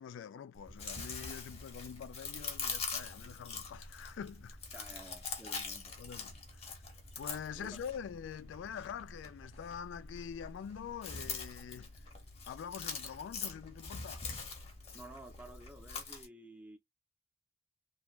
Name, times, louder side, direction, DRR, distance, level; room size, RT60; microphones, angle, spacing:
voice 1, 0.0-4.6 6.0-6.8 7.2-11.9 12.5-14.2, left 7 dB, 85° left, 0.3 m, -45 dB
Chewing mastication, 0.6-16.3, left 5 dB, 35° left, 0.9 m, -44 dB
sound 1, 0.7-16.0, left 2 dB, 75° right, 0.7 m, -59 dB
voice 2, 4.7-5.9 7.6-7.8 14.9-16.8, right 1 dB, 5° right, 0.5 m, -52 dB
3.1 x 2.2 x 2.3 m
head